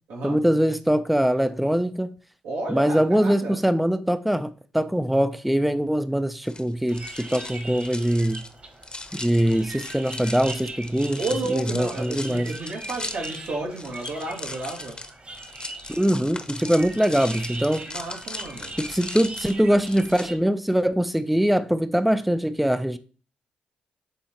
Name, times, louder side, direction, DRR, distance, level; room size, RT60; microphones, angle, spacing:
voice 1, 0.2-2.1 2.7-8.4 9.1-11.2 11.5-12.5 16.0-17.8 18.8-23.0, equal, 5° right, 0.5 m, -22 dB
voice 2, 2.4-3.6 11.2-15.0 17.9-18.7, right 2 dB, 85° right, 2.0 m, -32 dB
sound 1, 6.4-20.2, left 2 dB, 25° left, 0.9 m, -38 dB
sound 2, 6.9-20.4, right 2 dB, 40° right, 1.4 m, -41 dB
8.9 x 3.7 x 2.9 m
supercardioid pair, 50°, 4 cm